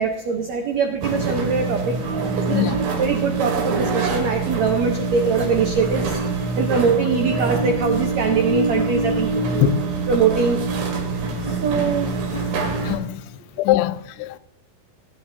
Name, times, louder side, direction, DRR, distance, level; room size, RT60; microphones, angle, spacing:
voice 1, 0.0-2.0 2.5-6.2 6.5-9.7 10.1-10.6 11.4-12.1 12.5-12.6, right 5 dB, 90° right, 1.5 m, -22 dB
sound 1, 1.0-13.0, right 3 dB, 65° right, 3.5 m, -24 dB
voice 2, 9.6-9.9 12.3-12.5 12.8-13.2 13.6-14.4, left 13 dB, 85° left, 2.6 m, -22 dB
18.5 x 9.6 x 2.7 m
omnidirectional pair, 4.7 m